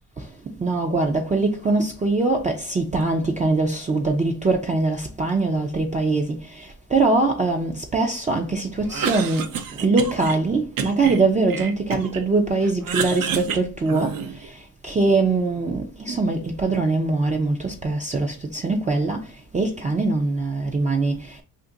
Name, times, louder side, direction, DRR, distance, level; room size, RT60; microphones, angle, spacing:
voice 1, 0.6-9.5 9.8-14.1 14.8-19.2 19.5-21.4, right 3 dB, 20° right, 0.4 m, -22 dB
Cough, 8.8-10.4 10.8-12.2 12.6-14.5, right 7 dB, 65° right, 0.6 m, -29 dB
2.6 x 2.5 x 3.7 m
cardioid pair, 95°, 37 cm